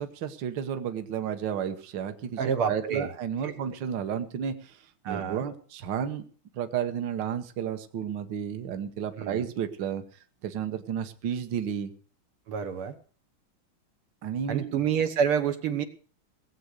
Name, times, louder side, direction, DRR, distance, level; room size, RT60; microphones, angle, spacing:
voice 1, 0.0-2.4 2.7-6.2 6.5-10.0 10.4-11.9 14.2-14.8, right 8 dB, 60° right, 8 dB, 1.7 m, -32 dB
voice 2, 2.4-3.1 3.4-3.5 5.0-5.4 9.2-9.5 12.5-13.0 14.5-15.8, right 7 dB, 90° right, 7 dB, 2.3 m, -28 dB
18.0 x 8.0 x 6.4 m, 0.43 s
omnidirectional pair, 2.3 m